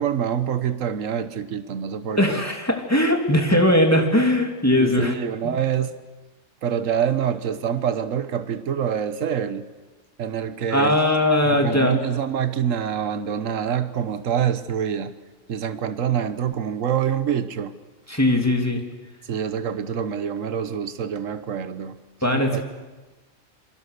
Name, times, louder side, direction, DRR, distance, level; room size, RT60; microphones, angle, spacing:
voice 1, 0.0-2.4 4.8-5.9 6.6-9.7 10.2-11.0 11.4-15.1 15.5-17.7 19.3-22.0 22.3-22.6, right 8 dB, 80° right, 11 dB, 1.4 m, -26 dB
voice 2, 2.2-5.1 5.4-5.5 10.7-12.0 18.1-18.8 22.2-22.6, left 1 dB, 10° left, 3 dB, 2.9 m, -20 dB
27.5 x 24.0 x 6.7 m, 1.2 s
omnidirectional pair, 1.3 m